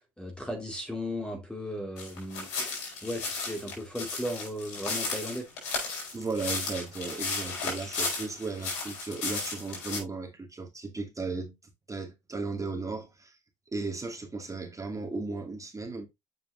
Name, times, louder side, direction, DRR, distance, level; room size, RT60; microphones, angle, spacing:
voice 1, 0.2-2.7 3.0-5.5, equal, 5° left, 2.6 m, -36 dB
sound 1, 2.0-10.0, left 4 dB, 85° left, 4.7 m, -34 dB
voice 2, 6.1-11.6 11.9-13.4 13.7-16.1, right 3 dB, 20° right, 2.6 m, -35 dB
7.8 x 5.5 x 2.8 m
supercardioid pair, 75°, 15 cm